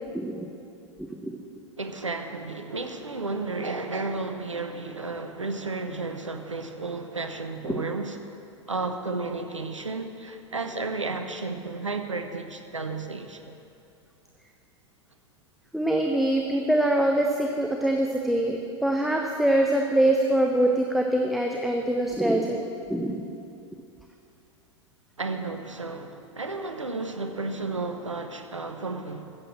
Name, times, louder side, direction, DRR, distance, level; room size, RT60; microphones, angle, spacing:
voice 1, 0.1-0.5 1.0-1.4 7.7-7.8 15.7-22.6 22.9-23.2, right 1 dB, ahead, 1 dB, 0.8 m, -24 dB
voice 2, 1.8-8.2 8.7-13.6 25.2-29.2, right 3 dB, 80° right, 6 dB, 1.1 m, -33 dB
14.5 x 7.9 x 7.4 m, 2.6 s
figure-of-eight pair, 95°, 16 cm